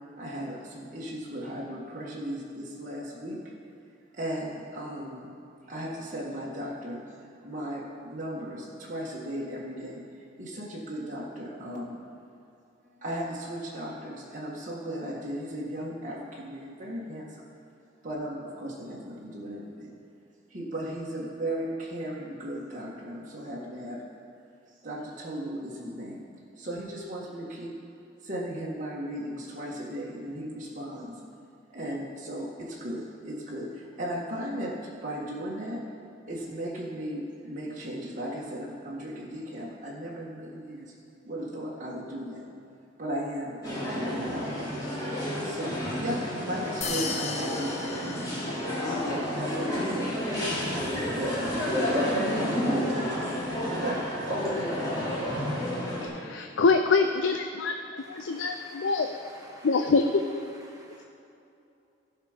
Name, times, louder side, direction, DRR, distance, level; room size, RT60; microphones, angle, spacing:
voice 1, 0.2-3.4 4.1-5.3 5.7-7.0 7.4-10.0 10.4-12.0 13.0-17.5 18.0-19.9 20.5-24.0 24.7-26.2 26.6-27.7 28.2-31.1 31.7-35.8 36.3-40.9 41.2-42.5 43.0-44.8 45.4-48.1 49.0-51.6 51.9-53.3 53.7-55.1, equal, 45° right, -5 dB, 1.6 m, -36 dB
sound 1, 43.6-56.1, equal, 20° left, 2.9 m, -30 dB
sound 2, 46.8-49.1, left 5 dB, 40° left, 0.8 m, -36 dB
voice 2, 56.2-59.1 59.6-60.2, left 4 dB, 85° left, 5 dB, 0.5 m, -25 dB
voice 3, 58.0-60.1 60.5-61.0, right 1 dB, 20° right, -3 dB, 1.7 m, -52 dB
15.5 x 5.9 x 5.1 m, 2.7 s
head